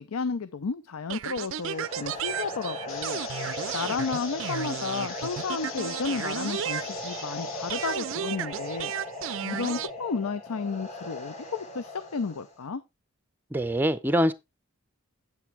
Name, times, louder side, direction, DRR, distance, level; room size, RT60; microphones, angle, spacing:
voice 1, 0.0-3.2 3.7-8.9 9.4-12.8, left 4 dB, 80° left, 0.6 m, -32 dB
sound 1, 1.1-7.4 7.7-9.9, right 9 dB, 60° right, 0.4 m, -34 dB
sound 2, 1.5-12.6, left 1 dB, 30° left, 1.7 m, -39 dB
sound 3, 2.9-8.0, left 7 dB, 65° left, 1.0 m, -42 dB
voice 2, 13.5-14.3, equal, 10° right, 0.5 m, -24 dB
8.6 x 8.2 x 3.3 m
head